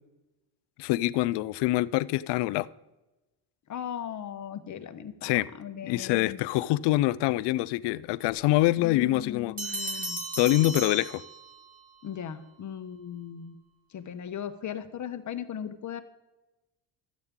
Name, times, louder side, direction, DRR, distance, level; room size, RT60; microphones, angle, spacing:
voice 1, 0.8-2.7 5.2-5.5 5.8-9.8 10.4-11.2, left 17 dB, 70° left, 18 dB, 0.5 m, -25 dB
voice 2, 3.7-6.4 8.8-10.2 12.0-13.6 13.9-16.0, left 8 dB, 45° left, 9 dB, 1.0 m, -38 dB
Bell, 9.6-11.8, right 2 dB, 20° right, 1.7 m, -35 dB
12.5 x 8.1 x 3.6 m, 1.0 s
supercardioid pair, 80°, 42 cm